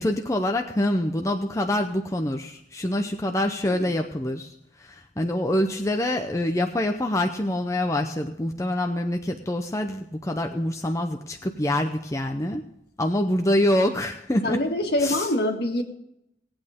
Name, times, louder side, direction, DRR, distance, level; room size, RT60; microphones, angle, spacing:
voice 1, 0.0-4.5 4.8-12.6 13.0-14.6 15.0-15.3, left 1 dB, 15° left, 4 dB, 0.6 m, -25 dB
voice 2, 14.4-15.8, left 1 dB, 60° left, 4 dB, 1.8 m, -25 dB
18.0 x 8.8 x 3.6 m, 0.79 s
head